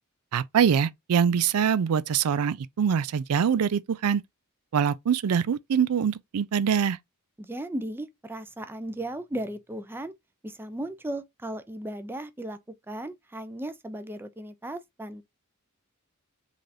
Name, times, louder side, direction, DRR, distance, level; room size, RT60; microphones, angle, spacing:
voice 1, 0.3-4.2 4.7-7.0, right 7 dB, 85° right, 0.4 m, -24 dB
voice 2, 7.4-10.1 10.4-12.6 12.9-15.2, right 1 dB, 10° right, 0.5 m, -36 dB
3.7 x 3.3 x 2.6 m
head